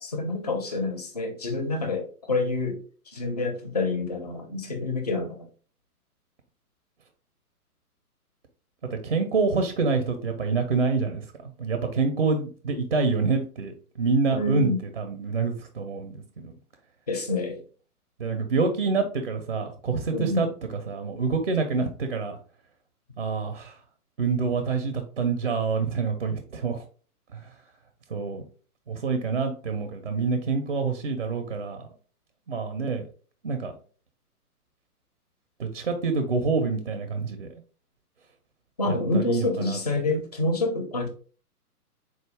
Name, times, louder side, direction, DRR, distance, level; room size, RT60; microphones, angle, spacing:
voice 1, 0.0-2.8 3.1-5.5 14.3-14.8 17.1-17.6 20.1-20.5 38.8-41.1, left 2 dB, 30° left, 0.4 m, -27 dB
voice 2, 9.0-16.5 18.2-22.4 23.2-23.8 24.2-26.8 27.3-27.5 28.1-28.4 28.9-31.8 32.5-33.0 33.4-33.7 35.6-37.5 38.9-39.8, right 4 dB, 40° right, 0.5 m, -27 dB
3.9 x 2.3 x 3.2 m
figure-of-eight pair, 125°, 46 cm